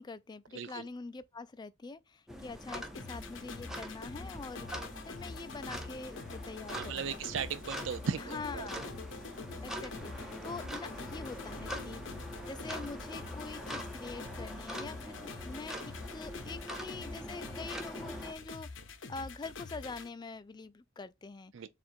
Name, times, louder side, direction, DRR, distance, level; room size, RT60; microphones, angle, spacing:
voice 1, 0.0-7.2 8.2-9.0 9.6-12.0 12.4-21.7, left 4 dB, 20° left, 0.3 m, -45 dB
sound 1, 2.3-18.3, equal, ahead, 0.7 m, -44 dB
sound 2, 2.9-20.1, left 4 dB, 65° left, 0.7 m, -46 dB
voice 2, 6.8-8.7 21.5-21.7, right 6 dB, 65° right, 0.4 m, -37 dB
Car passing by, 7.8-19.9, left 1 dB, 50° right, 2.0 m, -56 dB
7.0 x 2.5 x 2.5 m
head